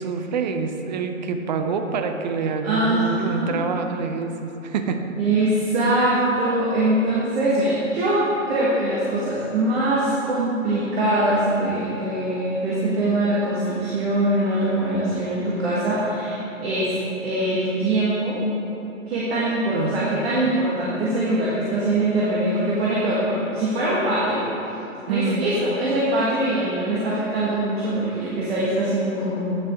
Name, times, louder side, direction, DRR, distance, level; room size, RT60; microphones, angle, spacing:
voice 1, 0.0-5.0 19.7-20.0 25.1-25.5, right 5 dB, 35° right, 6 dB, 0.5 m, -26 dB
voice 2, 2.6-3.6 5.2-17.0 17.2-18.4 19.1-24.4 25.1-29.5, right 1 dB, 50° right, -7 dB, 1.5 m, -22 dB
9.0 x 6.3 x 3.5 m, 2.9 s
figure-of-eight pair, 120°, 40 cm